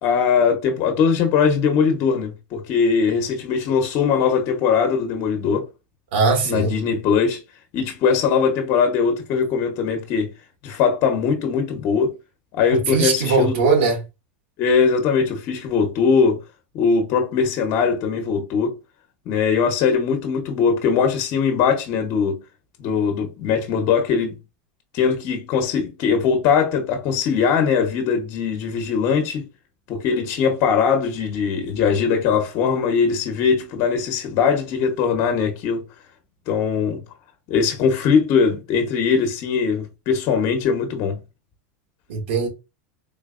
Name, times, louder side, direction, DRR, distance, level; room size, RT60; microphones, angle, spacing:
voice 1, 0.0-5.7 6.4-7.4 7.7-10.3 10.6-12.1 12.5-13.5 14.6-16.4 16.7-18.7 19.3-22.4 22.8-24.3 24.9-29.5 29.9-35.8 36.5-37.0 37.5-41.2, left 6 dB, 50° left, 1.1 m, -20 dB
voice 2, 6.1-6.7 12.7-14.0 42.1-42.5, right 4 dB, 80° right, 2.0 m, -20 dB
3.9 x 3.3 x 2.5 m
supercardioid pair, 125°, 6 cm